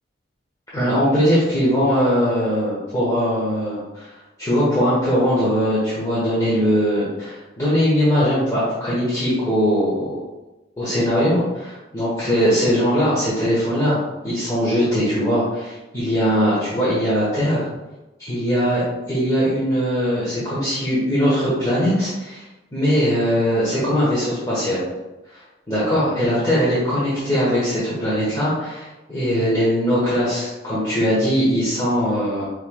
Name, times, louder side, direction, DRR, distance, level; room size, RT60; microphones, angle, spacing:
voice 1, 0.7-4.1 4.4-10.2 10.8-17.7 18.2-22.4 22.7-24.8 25.7-32.4, equal, 20° left, -10 dB, 1.2 m, -20 dB
5.4 x 3.2 x 2.3 m, 1.0 s
head